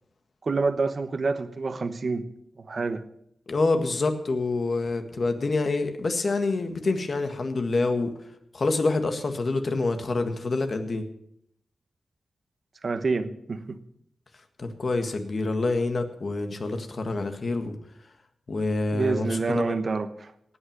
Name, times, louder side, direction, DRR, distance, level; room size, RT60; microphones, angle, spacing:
voice 1, 0.4-2.2 2.7-3.0 12.8-13.8 18.9-20.3, right 4 dB, 50° right, 10 dB, 1.1 m, -27 dB
voice 2, 3.5-8.1 8.5-11.0 14.6-17.8 18.5-19.8, left 3 dB, 50° left, 7 dB, 1.6 m, -27 dB
18.0 x 6.2 x 7.3 m, 0.74 s
wide cardioid pair, 100°, 0 cm